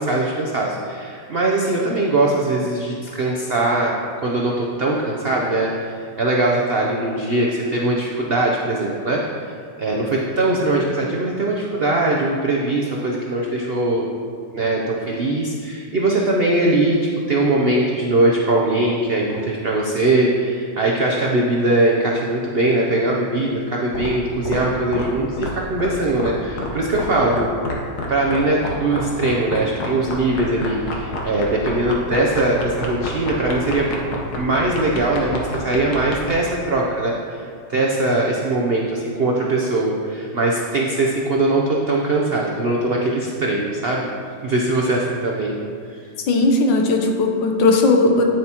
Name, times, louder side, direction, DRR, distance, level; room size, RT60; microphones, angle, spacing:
voice 1, 0.0-4.0 4.2-14.1 14.5-17.0 17.3-27.5 28.1-33.9 34.3-44.1 44.4-45.6 45.9-46.0, right 2 dB, 85° right, -2 dB, 0.5 m, -21 dB
sound 1, 23.9-24.1 24.5-24.6 24.9-25.0 25.4-25.5 25.8-25.9 26.2-26.3 26.6-26.7 26.9-27.0 27.3-27.7 28.0-28.1 28.3-36.3, left 4 dB, 60° left, 1.5 m, -27 dB
voice 2, 46.3-48.2, left 2 dB, 85° left, 3 dB, 1.6 m, -17 dB
9.1 x 7.6 x 2.9 m, 2.2 s
omnidirectional pair, 2.0 m